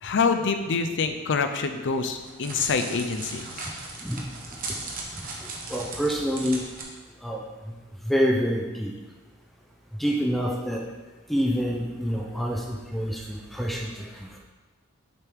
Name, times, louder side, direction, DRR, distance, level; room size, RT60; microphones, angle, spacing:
voice 1, 0.0-3.7, left 5 dB, 55° left, 7 dB, 0.5 m, -26 dB
Crackle, 1.9-6.8, right 3 dB, 40° right, 1.0 m, -37 dB
voice 2, 5.7-6.6 7.2-7.4 8.1-8.9 10.0-10.8 11.3-14.4, equal, ahead, -1 dB, 0.5 m, -27 dB
6.8 x 3.6 x 4.6 m, 1.2 s
head